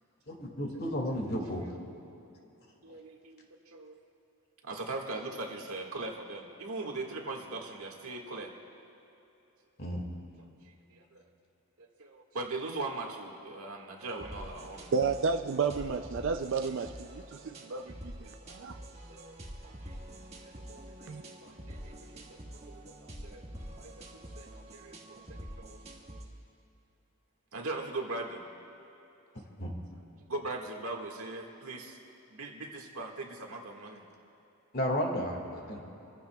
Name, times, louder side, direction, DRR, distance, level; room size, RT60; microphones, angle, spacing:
voice 1, 0.3-1.6 9.8-10.0 29.6-29.7 34.7-35.8, equal, 45° left, 1 dB, 2.0 m, -33 dB
voice 2, 2.8-4.0 4.6-8.5 10.7-11.2 11.8-14.9 18.4-19.4 19.6-20.0 20.4-23.4 23.8-25.8 27.5-28.4 30.3-32.0 32.3-34.0, right 2 dB, 75° right, 1 dB, 1.8 m, -41 dB
sound 1, 14.0-26.2, right 1 dB, 30° right, 1.5 m, -47 dB
voice 3, 14.9-18.8 21.1-21.2, right 5 dB, 55° right, 8 dB, 0.4 m, -32 dB
28.5 x 15.5 x 2.3 m, 3.0 s
head